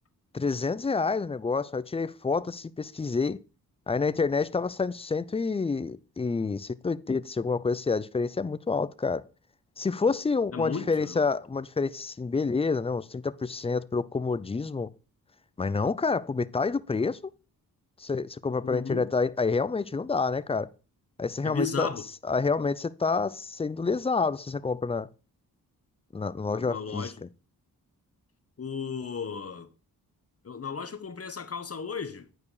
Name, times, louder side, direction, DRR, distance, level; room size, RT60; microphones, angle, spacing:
voice 1, 0.3-3.4 3.9-9.2 9.8-14.9 15.6-17.3 18.0-20.7 21.2-21.9 22.3-25.1 26.1-27.1, left 4 dB, 15° left, 0.4 m, -28 dB
voice 2, 10.5-11.2 18.6-19.1 21.4-22.0 26.5-27.1 28.6-29.7 30.4-32.3, left 5 dB, 40° left, 1.1 m, -34 dB
9.5 x 4.8 x 4.8 m
cardioid pair, 60°, 38 cm